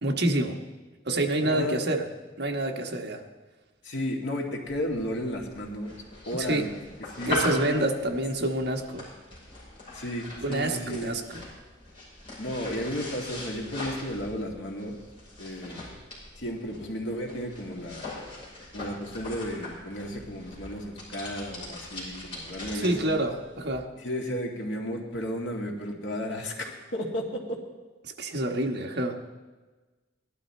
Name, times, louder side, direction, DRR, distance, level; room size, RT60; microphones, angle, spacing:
voice 1, 0.0-0.6 1.0-2.0 2.4-3.2 6.4-6.7 7.3-9.0 10.4-11.4 22.7-23.9 28.0-29.2, right 1 dB, 60° right, 2 dB, 1.3 m, -27 dB
voice 2, 1.4-1.8 3.8-5.9 6.3-6.9 7.2-7.9 9.9-11.2 12.4-15.0 15.4-15.9 16.4-18.2 18.7-23.2 24.0-27.6, equal, 70° left, 0 dB, 2.2 m, -33 dB
sound 1, 4.7-23.8, left 2 dB, 30° left, 5.7 m, -40 dB
18.0 x 12.0 x 4.4 m, 1.3 s
head